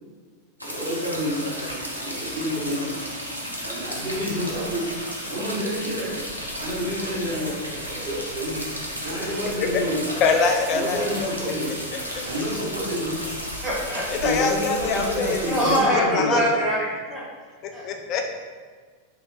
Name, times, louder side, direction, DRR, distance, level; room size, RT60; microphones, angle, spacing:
sound 1, 0.6-15.8, equal, 90° left, 0.6 m, -34 dB
voice 1, 0.6-2.9 3.6-4.9 5.2-6.2 6.6-8.7 9.0-10.2 10.7-11.8 12.2-13.2 14.1-16.4, equal, 70° right, -7 dB, 1.5 m, -29 dB
sound 2, 2.1-13.5, right 1 dB, 70° left, 1.2 m, -46 dB
voice 2, 10.2-11.3 14.1-15.6 15.9-16.6 17.8-18.4, left 4 dB, 35° left, 4 dB, 0.3 m, -24 dB
voice 3, 13.6-14.0 15.5-17.2 17.7-17.8, equal, 20° right, -4 dB, 0.9 m, -23 dB
3.0 x 2.8 x 4.1 m, 1.5 s
figure-of-eight pair, 90°, 0 cm